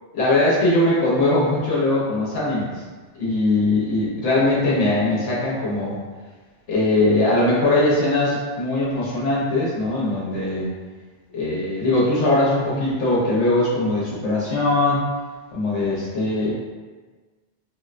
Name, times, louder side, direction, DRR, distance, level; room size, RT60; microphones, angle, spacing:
voice 1, 0.1-2.7 3.2-6.0 6.7-10.7 11.3-15.0 15.5-16.5, left 2 dB, 85° left, -7 dB, 1.0 m, -20 dB
3.7 x 2.1 x 2.4 m, 1.4 s
omnidirectional pair, 1.2 m